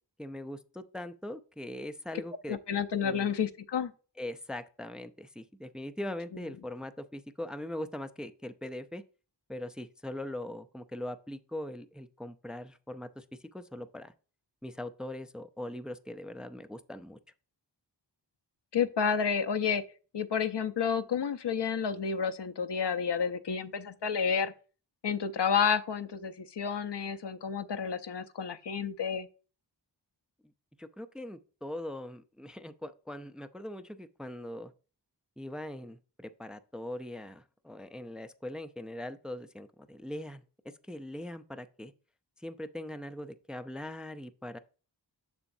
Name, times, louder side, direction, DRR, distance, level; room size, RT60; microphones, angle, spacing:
voice 1, 0.2-2.6 3.0-3.3 4.2-9.0 9.5-13.2 13.5-14.1 14.6-17.2 30.8-34.7 35.4-41.9 42.4-44.6, left 1 dB, ahead, 0.5 m, -41 dB
voice 2, 2.5-3.9 18.7-19.8 20.1-24.5 25.0-29.3, left 6 dB, 70° left, 0.7 m, -30 dB
7.1 x 6.8 x 2.7 m
wide cardioid pair, 60°, 43 cm